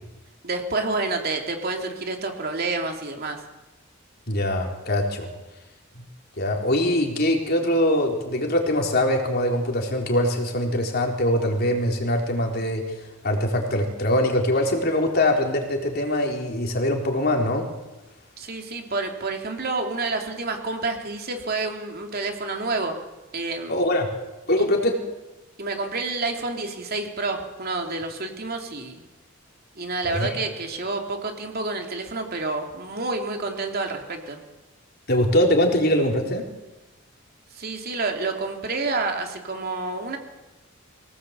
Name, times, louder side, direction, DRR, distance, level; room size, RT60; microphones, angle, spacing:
voice 1, 0.4-3.4 18.4-22.9 23.3-23.7 25.6-29.0 29.8-34.4 37.5-40.2, right 3 dB, 50° right, 3 dB, 3.2 m, -29 dB
voice 2, 4.3-5.3 6.4-13.0 13.2-17.7 23.7-24.1 24.5-25.0 30.0-30.4 35.1-36.5, left 1 dB, 50° left, 1 dB, 4.1 m, -23 dB
24.0 x 18.0 x 8.3 m, 1.0 s
head